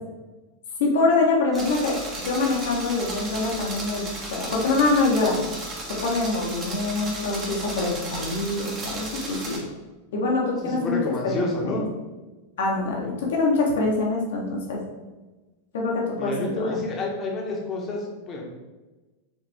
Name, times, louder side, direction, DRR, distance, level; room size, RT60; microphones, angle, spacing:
voice 1, 0.8-1.9 2.2-4.0 4.3-5.3 6.0-9.6 10.1-11.0 11.2-11.7 12.6-14.8 15.7-16.6, left 3 dB, 60° left, -1 dB, 1.5 m, -24 dB
sound 1, 1.5-9.6, right 1 dB, 25° right, 1.6 m, -35 dB
voice 2, 10.6-11.8 16.1-18.4, left 2 dB, 30° left, -1 dB, 1.4 m, -29 dB
6.6 x 4.0 x 3.6 m, 1.2 s
figure-of-eight pair, 90°, 0 cm